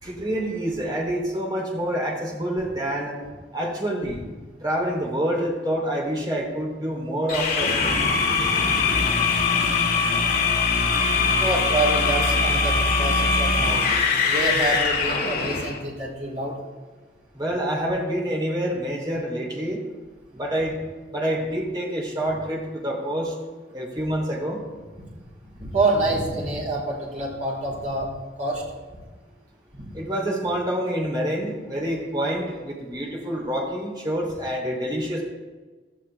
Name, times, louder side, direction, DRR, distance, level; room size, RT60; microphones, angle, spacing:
voice 1, 0.0-3.2 3.5-4.2 4.6-8.0 17.3-19.8 20.3-20.8 21.1-23.3 23.7-24.6 29.9-35.2, equal, 25° right, -1 dB, 2.9 m, -27 dB
sound 1, 7.3-15.8, left 4 dB, 55° left, 2.0 m, -22 dB
voice 2, 11.4-13.8 14.3-16.6 25.6-28.1 28.4-28.6 29.7-29.9, right 2 dB, 45° right, -5 dB, 3.7 m, -26 dB
16.5 x 12.5 x 3.4 m, 1.3 s
head